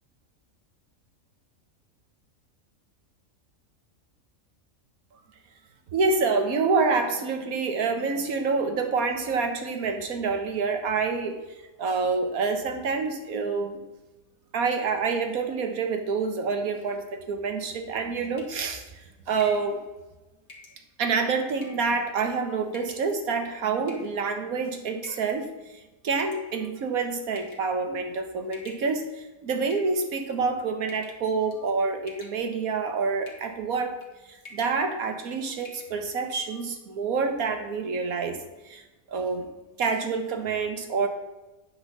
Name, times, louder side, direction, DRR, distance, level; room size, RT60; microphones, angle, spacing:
voice 1, 5.9-11.4 11.8-13.8 14.5-19.8 21.0-34.0 34.2-38.4 38.6-38.8 39.1-39.5 39.8-41.1, right 4 dB, 90° right, 6 dB, 1.6 m, -27 dB
sound 1, 18.2-18.6 19.4-19.7 20.5-20.8 21.6-21.9 22.7-23.1 23.9-24.3 25.0-25.4 26.2-26.8 27.4-27.7 28.5-29.2 29.7-30.3 30.9-31.2 31.5-31.8 32.1-32.6 33.3-33.5 33.9-34.1 34.4-34.8 35.1-35.2 35.6-35.9, left 3 dB, 80° left, 1.9 m, -47 dB
9.2 x 4.1 x 7.3 m, 1.1 s
omnidirectional pair, 1.4 m